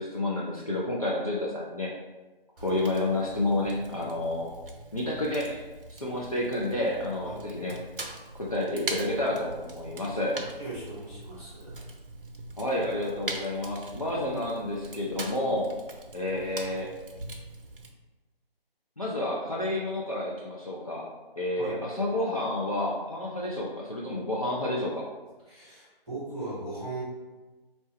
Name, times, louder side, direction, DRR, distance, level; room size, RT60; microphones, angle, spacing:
voice 1, 0.0-1.9 2.6-4.5 4.9-5.6 5.9-7.8 8.5-10.4 12.6-15.7 16.1-16.9 19.0-21.1 21.4-25.0, left 1 dB, 40° left, -5 dB, 0.4 m, -30 dB
Fire, 2.6-17.9, right 2 dB, 65° right, 0.6 m, -42 dB
voice 2, 10.6-11.8 21.6-21.8 25.5-27.0, right 2 dB, 5° right, -12 dB, 1.0 m, -38 dB
4.3 x 2.8 x 3.0 m, 1.2 s
figure-of-eight pair, 165°, 30 cm